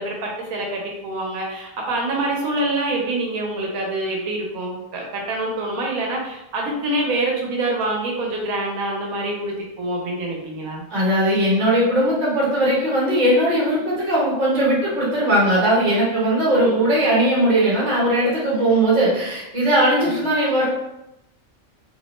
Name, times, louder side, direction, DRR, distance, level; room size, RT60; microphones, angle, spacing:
voice 1, 0.0-10.8 16.6-16.9, right 2 dB, 85° right, -1 dB, 1.1 m, -26 dB
voice 2, 10.9-20.7, right 1 dB, 35° right, -6 dB, 1.1 m, -19 dB
2.7 x 2.1 x 2.9 m, 0.87 s
omnidirectional pair, 1.5 m